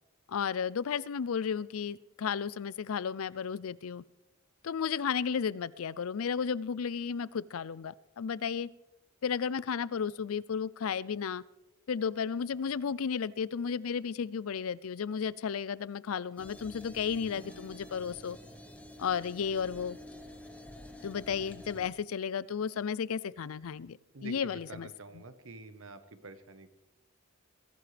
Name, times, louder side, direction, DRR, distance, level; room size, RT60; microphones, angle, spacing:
voice 1, 0.3-4.0 4.6-8.7 9.2-11.4 11.9-18.4 19.0-20.0 21.0-25.2, left 6 dB, 80° left, 0.4 m, -33 dB
sound 1, 16.4-21.9, left 1 dB, 5° left, 1.1 m, -49 dB
Acoustic guitar / Strum, 17.3-22.1, right 1 dB, 60° left, 6.1 m, -62 dB
voice 2, 24.1-26.7, right 3 dB, 70° right, 1.2 m, -47 dB
22.0 x 16.0 x 3.4 m
head